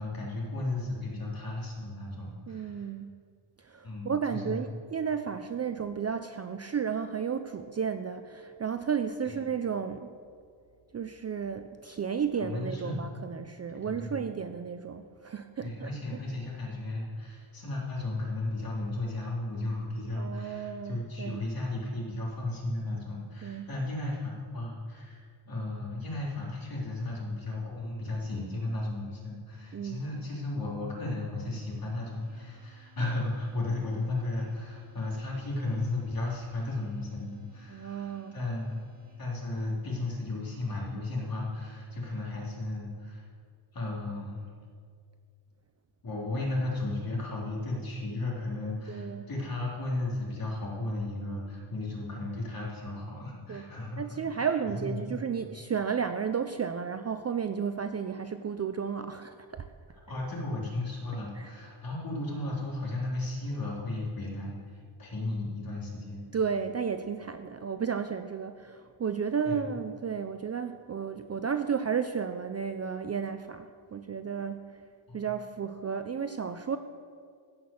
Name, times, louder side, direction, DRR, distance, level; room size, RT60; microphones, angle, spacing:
voice 1, 0.0-2.9 3.8-4.6 12.4-13.0 13.7-14.1 15.6-38.7 39.2-43.2 43.7-44.4 46.0-54.5 54.7-55.0 60.1-66.3 69.4-69.6 75.1-75.2, left 2 dB, 45° left, -4 dB, 3.4 m, -34 dB
voice 2, 2.5-3.2 3.6-10.1 10.9-16.2 20.1-21.4 23.4-23.7 29.7-30.1 37.7-38.3 48.9-49.3 53.5-59.7 61.3-61.6 66.3-74.8 75.1-76.8, right 7 dB, 35° right, 8 dB, 0.4 m, -33 dB
sound 1, 32.0-39.2, right 3 dB, 55° right, 4.0 m, -64 dB
16.0 x 6.0 x 7.0 m, 2.1 s
wide cardioid pair, 140°, 49 cm